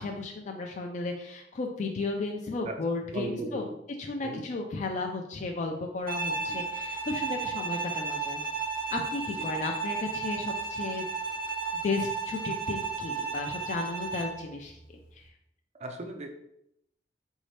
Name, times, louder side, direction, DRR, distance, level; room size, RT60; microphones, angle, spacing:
voice 1, 0.0-3.6 4.0-8.4 8.9-11.0 11.7-14.7 15.1-15.2, left 3 dB, 40° left, 2 dB, 0.4 m, -34 dB
voice 2, 3.1-3.8 4.2-4.4 6.3-6.6 9.3-9.5 15.7-16.3, right 2 dB, 40° right, 5 dB, 0.5 m, -37 dB
Bowed string instrument, 6.1-14.4, right 4 dB, 55° right, 0.8 m, -33 dB
4.1 x 2.7 x 3.2 m, 0.78 s
head